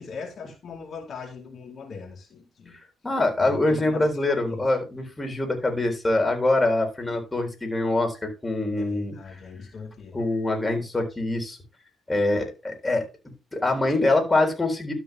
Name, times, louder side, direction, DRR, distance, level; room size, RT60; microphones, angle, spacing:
voice 1, 0.0-2.8 3.4-4.7 8.8-10.2, left 5 dB, 55° left, 2.4 m, -40 dB
voice 2, 3.0-9.1 10.1-11.6 12.1-13.0 13.5-14.9, left 2 dB, 15° left, 3.8 m, -24 dB
12.5 x 5.9 x 3.7 m
cardioid pair, 90°, 0 cm